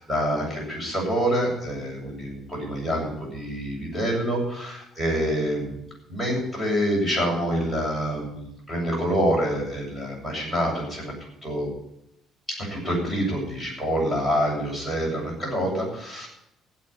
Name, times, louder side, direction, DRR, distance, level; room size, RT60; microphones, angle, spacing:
voice 1, 0.1-5.8 6.1-11.7 12.6-16.3, equal, 5° right, -2 dB, 7.9 m, -26 dB
15.5 x 8.7 x 8.7 m, 0.81 s
cardioid pair, 150°, 0 cm